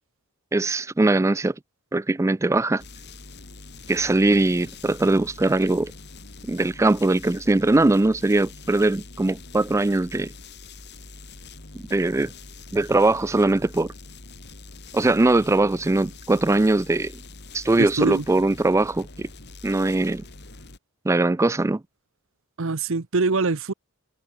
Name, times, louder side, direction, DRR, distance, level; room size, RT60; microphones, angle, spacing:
voice 1, 0.5-1.5 1.9-2.8 3.9-5.9 6.5-10.3 11.9-12.3 12.7-13.9 14.9-17.1 17.5-19.3 19.6-20.2 21.1-21.8, right 2 dB, 15° right, 0.3 m, -21 dB
sound 1, 2.8-20.8, left 3 dB, 50° left, 3.1 m, -44 dB
voice 2, 17.8-18.2 22.6-23.7, right 3 dB, 60° right, 0.9 m, -23 dB
head